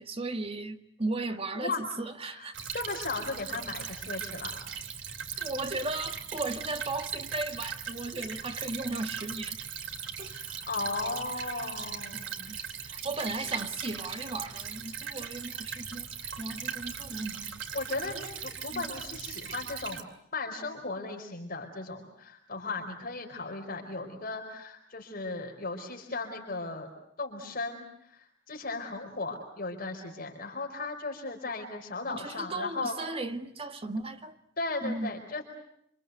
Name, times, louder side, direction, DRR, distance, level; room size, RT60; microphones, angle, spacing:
voice 1, 0.0-2.6 5.4-9.6 10.2-10.4 12.1-16.1 16.4-17.6 18.7-18.9 32.1-34.4 34.8-35.1, right 2 dB, 30° right, 1.8 m, -36 dB
voice 2, 1.5-1.9 2.4-2.5 2.7-4.6 10.3-12.3 17.7-20.1 20.3-26.9 27.2-32.9 34.6-35.4, left 3 dB, 50° left, 4.7 m, -36 dB
Stream / Trickle dribble, 2.5-20.0, right 7 dB, 90° right, 2.7 m, -39 dB
28.0 x 26.5 x 8.1 m
head